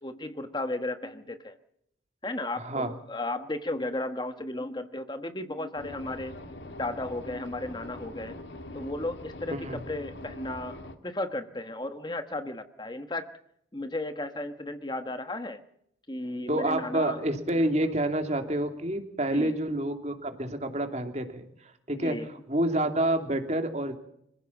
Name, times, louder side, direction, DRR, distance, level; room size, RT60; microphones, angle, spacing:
voice 1, 0.0-1.6 2.2-6.4 6.8-8.4 8.7-10.8 11.0-13.3 13.7-15.6 16.1-17.2 19.3-19.6 21.9-22.3, left 2 dB, 25° left, 8 dB, 1.3 m, -34 dB
voice 2, 2.5-2.9 9.5-9.8 16.5-23.9, right 1 dB, 35° right, 6 dB, 2.8 m, -28 dB
sound 1, 5.8-11.0, left 1 dB, 70° left, 2.3 m, -43 dB
26.5 x 16.0 x 7.2 m, 0.73 s
head